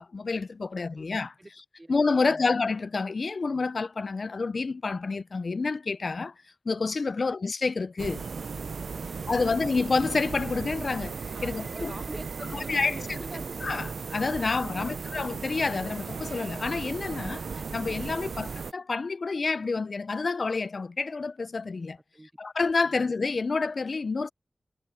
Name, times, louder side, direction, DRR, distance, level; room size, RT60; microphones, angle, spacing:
voice 1, 0.0-1.3 1.9-6.3 6.7-8.2 9.3-11.9 12.7-13.2 13.6-17.4 17.7-22.0 22.4-24.3, left 4 dB, 55° left, 0.4 m, -28 dB
voice 2, 1.8-2.5 9.0-9.5 11.3-13.5 14.3-15.0 22.1-22.3 22.8-23.1, right 1 dB, 20° right, 0.5 m, -46 dB
sound 1, 8.0-18.7, right 5 dB, 80° right, 0.5 m, -36 dB
wide cardioid pair, 110°, 0 cm